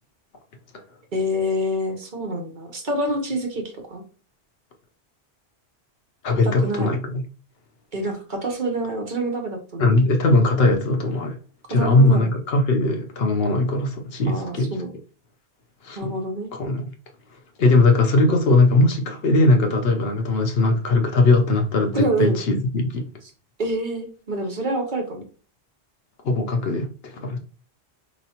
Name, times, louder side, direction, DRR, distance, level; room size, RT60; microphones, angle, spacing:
voice 1, 1.1-4.0 6.4-6.9 7.9-9.9 11.7-12.3 14.3-14.9 16.0-16.5 21.9-22.4 23.6-25.2, right 1 dB, 50° right, 3 dB, 0.9 m, -27 dB
voice 2, 6.2-7.2 9.8-11.4 11.7-14.7 15.8-16.1 16.5-16.9 17.6-23.1 26.2-27.4, left 2 dB, 70° left, 4 dB, 0.9 m, -19 dB
4.4 x 3.1 x 2.8 m, 0.38 s
omnidirectional pair, 1.1 m